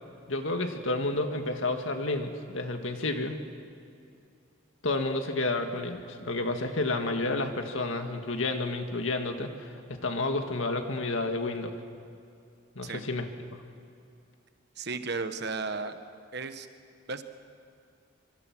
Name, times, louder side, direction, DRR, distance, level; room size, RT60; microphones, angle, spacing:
voice 1, 0.3-3.4 4.8-11.7 12.8-13.3 13.5-13.6, left 2 dB, 75° left, 5 dB, 2.0 m, -30 dB
voice 2, 14.8-16.0 16.3-16.7 17.1-17.2, right 4 dB, 55° right, 9 dB, 1.2 m, -34 dB
25.0 x 24.5 x 6.2 m, 2.4 s
head